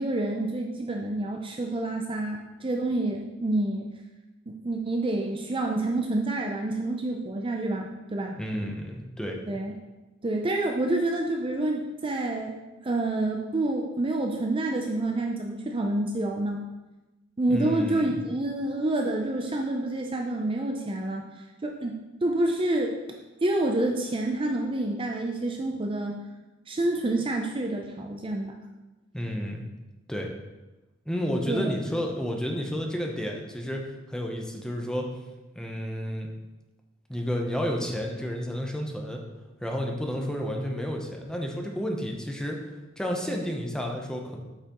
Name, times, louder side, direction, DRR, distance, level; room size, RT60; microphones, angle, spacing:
voice 1, 0.0-3.9 4.5-8.4 9.5-9.7 10.2-12.6 12.8-16.6 17.4-21.2 21.6-23.0 23.4-26.2 26.7-28.5 31.5-31.7, right 2 dB, 25° right, 1 dB, 0.5 m, -28 dB
voice 2, 8.4-9.4 17.5-18.2 29.1-29.6 30.1-30.3 31.1-35.1 35.5-36.3 37.1-39.2 39.6-42.6 43.0-44.4, equal, 5° left, 1 dB, 0.8 m, -31 dB
8.2 x 5.8 x 3.0 m, 1.1 s
head